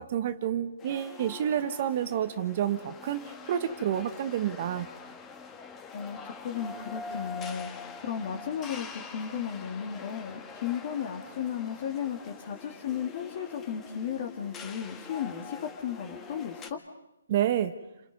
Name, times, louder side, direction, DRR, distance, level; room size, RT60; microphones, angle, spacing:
voice 1, 0.0-4.9 17.3-17.8, right 10 dB, 40° right, 10 dB, 1.2 m, -29 dB
sound 1, 0.8-16.7, left 5 dB, 15° left, 1.6 m, -44 dB
voice 2, 5.9-16.8, left 8 dB, 40° left, 2 dB, 2.4 m, -35 dB
29.5 x 26.5 x 5.4 m, 0.89 s
hypercardioid pair, 155°, 0 cm